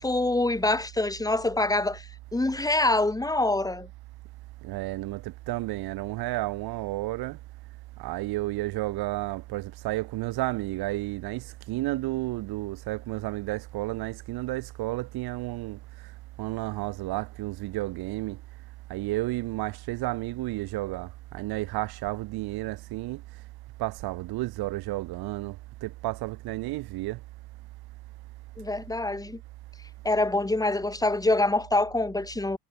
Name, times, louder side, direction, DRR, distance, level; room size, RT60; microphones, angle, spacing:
voice 1, 0.0-2.1 2.3-3.9 28.6-29.4 30.1-32.6, left 2 dB, 10° left, 3.3 m, -25 dB
voice 2, 4.6-7.4 8.0-15.8 16.4-18.4 18.9-23.2 23.8-27.2, right 18 dB, 70° right, 4.5 m, -32 dB
cardioid pair, 115°, 38 cm